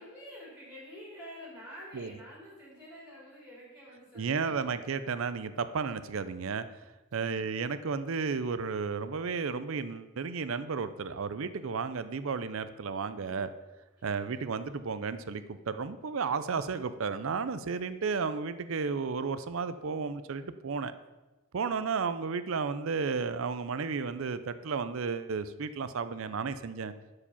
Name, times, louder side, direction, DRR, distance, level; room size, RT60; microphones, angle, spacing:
voice 1, 0.0-4.8 7.1-7.5 13.2-13.3, equal, 5° right, -4 dB, 3.1 m, -48 dB
voice 2, 4.2-6.7 7.1-13.5 14.0-20.9 21.5-26.9, right 5 dB, 65° right, 13 dB, 0.5 m, -33 dB
11.5 x 4.9 x 5.6 m, 1.1 s
head